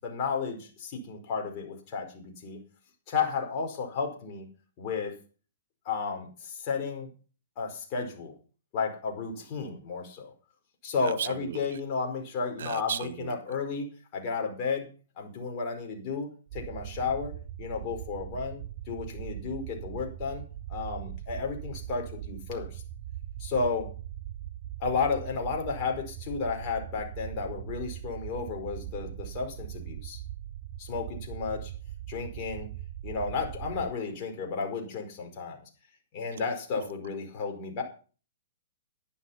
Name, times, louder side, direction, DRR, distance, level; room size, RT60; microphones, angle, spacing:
voice 1, 0.0-2.6 3.1-4.5 4.8-5.1 5.8-7.1 7.6-8.3 8.7-10.3 10.8-14.9 15.2-17.3 17.6-20.4 20.7-22.8 23.4-23.9 24.8-30.2 30.8-31.7 32.1-32.7 33.0-35.6 36.1-37.8, left 5 dB, 40° left, 2 dB, 4.8 m, -33 dB
voice 2, 11.0-11.8 12.6-13.3 36.8-36.9, right 8 dB, 70° right, 18 dB, 0.8 m, -35 dB
sound 1, 16.5-33.9, right 12 dB, 35° right, 2.6 m, -40 dB
11.0 x 11.0 x 5.8 m, 0.38 s
hypercardioid pair, 130°, 0 cm